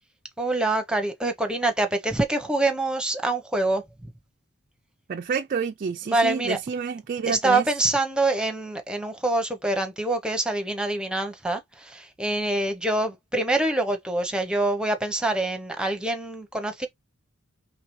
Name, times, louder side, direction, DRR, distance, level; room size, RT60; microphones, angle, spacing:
voice 1, 0.4-3.8 6.1-6.6 7.3-16.9, right 2 dB, 5° right, 0.8 m, -25 dB
voice 2, 5.1-7.6, right 6 dB, 40° right, 0.3 m, -29 dB
4.7 x 3.3 x 3.1 m
head